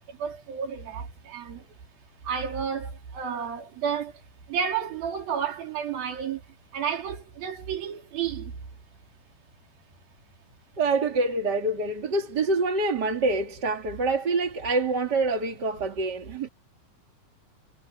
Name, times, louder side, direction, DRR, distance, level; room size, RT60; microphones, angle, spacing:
voice 1, 0.2-1.6 2.3-4.1 4.5-6.4 6.7-8.5, right 7 dB, 75° right, 5.5 m, -31 dB
voice 2, 10.8-16.5, right 3 dB, 35° right, 2.2 m, -26 dB
omnidirectional pair, 4.2 m